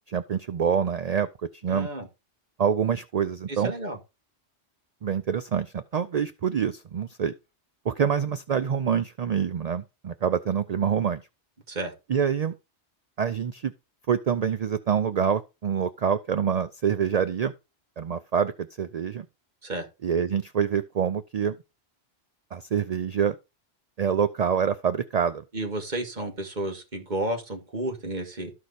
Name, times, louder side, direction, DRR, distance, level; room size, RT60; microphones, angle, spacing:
voice 1, 0.1-1.3 1.6-1.9 2.6-3.7 5.0-7.3 7.9-11.2 12.1-12.5 13.2-13.7 14.1-17.5 18.0-19.3 20.0-21.6 22.5-23.4 24.0-25.4, right 7 dB, 55° right, 0.4 m, -26 dB
voice 2, 1.7-2.1 3.5-4.0 11.7-11.9 19.6-19.9 25.5-28.5, right 1 dB, 40° right, 2.0 m, -32 dB
13.0 x 4.7 x 4.1 m
omnidirectional pair, 1.2 m